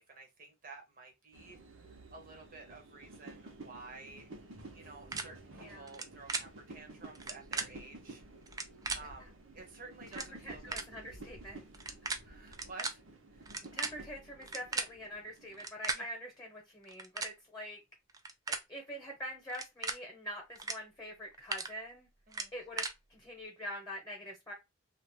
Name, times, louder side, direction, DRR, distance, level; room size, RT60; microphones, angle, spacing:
voice 1, 0.0-1.6 2.1-4.3 4.7-8.2 8.9-10.8 12.2-13.0 13.3-13.5 15.9-16.1 22.3-22.5, right 3 dB, 45° right, 0.8 m, -52 dB
sound 1, 1.3-15.7, right 2 dB, 80° right, 0.9 m, -52 dB
sound 2, 5.1-5.2 5.9-6.0 6.3-6.4 7.1-7.7 8.5-9.0 9.7-9.8 10.1-10.3 10.7-10.8 11.7-12.2 12.5-12.9 13.4-14.9 15.5-16.0 16.8-17.3 18.1-18.6 19.5-20.0 20.5-20.7 21.1-21.7 22.3-22.9, right 4 dB, 15° right, 0.3 m, -36 dB
voice 2, 5.5-6.0 9.2-9.3 10.1-11.6 13.7-17.8 18.5-22.1 22.5-24.5, equal, 15° left, 0.9 m, -45 dB
2.5 x 2.5 x 3.4 m
head